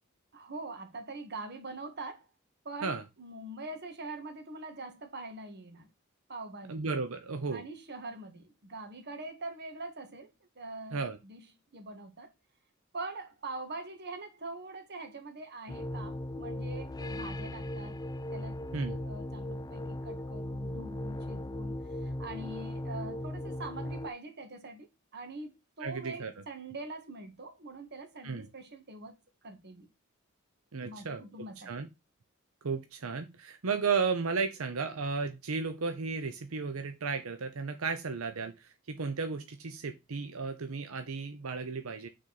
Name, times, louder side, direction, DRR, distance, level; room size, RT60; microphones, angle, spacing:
voice 1, 0.3-2.3 2.6-5.9 6.3-6.9 7.5-11.4 11.7-12.3 12.9-18.0 18.3-18.6 19.0-21.7 22.0-29.1 29.4-29.9 30.8-31.9, right 2 dB, 55° right, 1.7 m, -43 dB
voice 2, 6.7-7.6 10.9-11.2 18.7-19.0 25.8-26.4 28.2-28.5 30.7-31.9 32.6-42.1, right 4 dB, 90° right, 0.8 m, -34 dB
sound 1, 15.7-24.1, left 1 dB, 20° left, 0.4 m, -38 dB
6.2 x 4.1 x 5.8 m
head